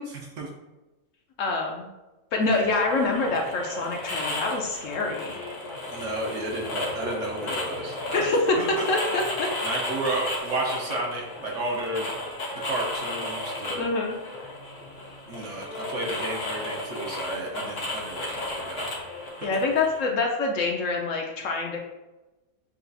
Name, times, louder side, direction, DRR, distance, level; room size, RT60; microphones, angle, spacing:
voice 1, 1.4-1.9 2.3-5.4 8.1-8.6 8.9-9.5 13.7-14.2 19.4-21.8, left 3 dB, 65° left, 0 dB, 0.9 m, -26 dB
sound 1, 2.5-20.0, left 1 dB, 85° left, 1.6 m, -34 dB
voice 2, 5.9-8.3 8.6-8.7 9.6-12.1 12.6-13.9 15.3-18.9, right 2 dB, 60° right, -1 dB, 1.1 m, -32 dB
6.7 x 2.4 x 2.6 m, 1.1 s
omnidirectional pair, 1.6 m